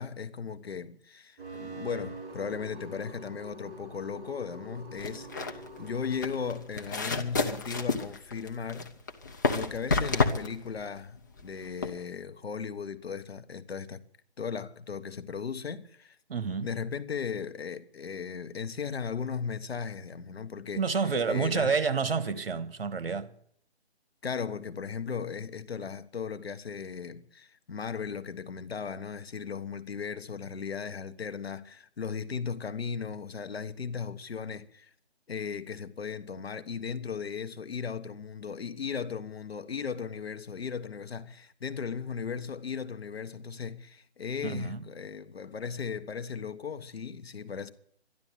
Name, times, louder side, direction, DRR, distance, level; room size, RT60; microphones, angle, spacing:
voice 1, 0.0-8.9 9.5-14.0 14.4-16.2 16.6-21.8 24.2-34.9 35.3-47.7, left 6 dB, 65° left, 1.4 m, -37 dB
sound 1, 1.4-6.6, right 1 dB, 15° right, 4.3 m, -45 dB
sound 2, 5.0-12.0, left 3 dB, 20° left, 0.7 m, -30 dB
voice 2, 16.3-16.7 20.8-23.3 44.4-44.8, right 5 dB, 60° right, 1.5 m, -29 dB
12.5 x 11.5 x 9.3 m
hypercardioid pair, 160°, 33 cm